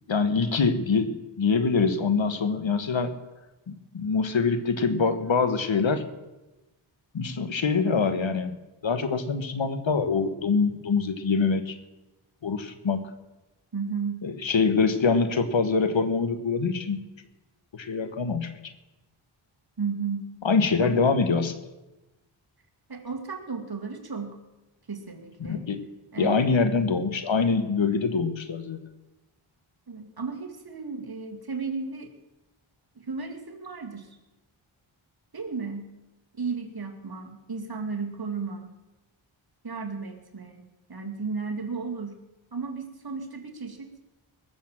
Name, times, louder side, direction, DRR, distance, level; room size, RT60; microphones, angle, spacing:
voice 1, 0.1-3.1 3.7-6.0 7.1-8.5 8.8-11.8 12.4-13.0 14.2-17.0 17.7-18.5 20.4-21.5 25.5-25.8 26.2-28.8, left 4 dB, 65° left, 10 dB, 1.4 m, -24 dB
voice 2, 13.7-14.3 19.8-20.4 20.8-21.0 22.9-24.4 24.9-25.7 26.1-26.5 29.9-32.1 33.0-34.2 35.3-35.9 36.3-38.7 39.6-42.2 42.5-43.9, right 5 dB, 50° right, 4 dB, 2.2 m, -34 dB
20.0 x 7.2 x 7.4 m, 1.0 s
wide cardioid pair, 65°, 49 cm